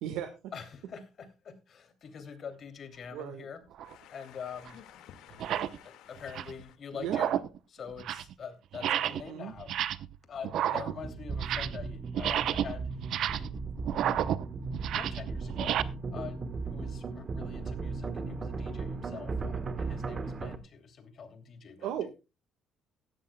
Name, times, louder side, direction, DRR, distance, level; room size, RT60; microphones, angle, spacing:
voice 1, 0.0-0.5 3.1-3.5 6.9-7.3 9.1-9.5 21.8-22.1, right 10 dB, 90° right, 1.5 m, -37 dB
voice 2, 0.5-3.6 4.1-4.8 6.1-7.4 7.7-9.7 10.3-12.9 13.3-13.5 13.9-14.3 14.9-15.8 16.1-21.9, left 6 dB, 45° left, 2.8 m, -44 dB
sound 1, 3.7-3.9 4.7-4.8 5.3-5.8 6.2-6.6 7.0-7.6 7.9-8.3 8.7-9.3 9.6-10.2 10.4-11.9 12.1-15.8, right 11 dB, 65° right, 0.7 m, -31 dB
voice 3, 3.8-6.8, left 10 dB, 80° left, 1.9 m, -53 dB
sound 2, 11.0-20.6, right 4 dB, 35° right, 1.3 m, -37 dB
16.5 x 13.0 x 2.3 m
cardioid pair, 130°, 0 cm